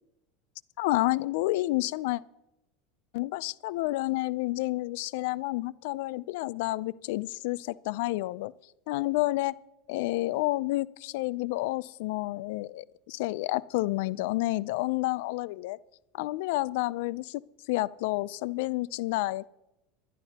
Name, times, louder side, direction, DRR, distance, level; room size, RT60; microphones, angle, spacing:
voice 1, 0.8-2.2 3.1-8.5 8.9-9.6 9.9-15.8 16.1-17.4 17.7-19.5, left 19 dB, 70° left, 20 dB, 0.4 m, -30 dB
25.5 x 11.5 x 2.9 m, 0.92 s
hypercardioid pair, 95°, 0 cm